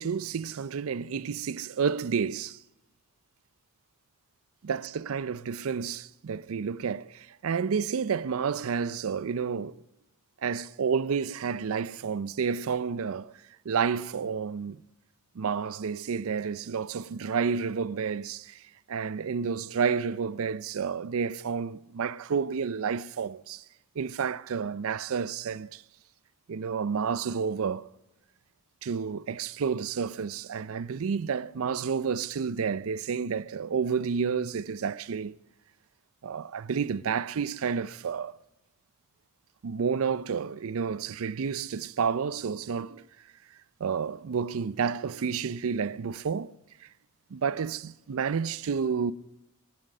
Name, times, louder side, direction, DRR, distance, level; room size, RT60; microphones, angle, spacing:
voice 1, 0.0-2.6 4.6-9.8 10.4-13.3 13.7-14.8 15.4-18.6 18.9-23.6 24.0-25.8 26.5-27.9 28.8-35.4 36.2-38.4 39.6-43.1 43.8-46.5 46.8-46.9 47.3-49.1, right 6 dB, 65° right, 0.4 m, -30 dB
20.0 x 9.0 x 6.6 m
head